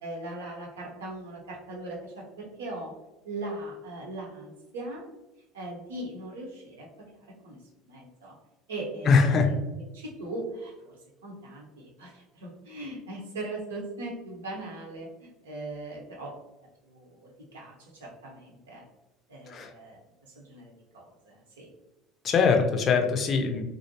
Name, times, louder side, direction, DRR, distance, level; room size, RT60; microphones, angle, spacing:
voice 1, 0.0-2.9 3.2-5.1 5.5-7.1 7.4-7.6 7.9-8.3 8.7-10.9 11.2-16.3 16.8-18.8 19.3-20.0 20.3-21.7 22.6-22.7, right 2 dB, 85° right, -2 dB, 0.7 m, -39 dB
voice 2, 9.1-9.5 19.5-19.7 22.2-23.6, left 5 dB, 40° left, 4 dB, 0.4 m, -22 dB
2.5 x 2.1 x 2.7 m, 1.0 s
hypercardioid pair, 70°, 0 cm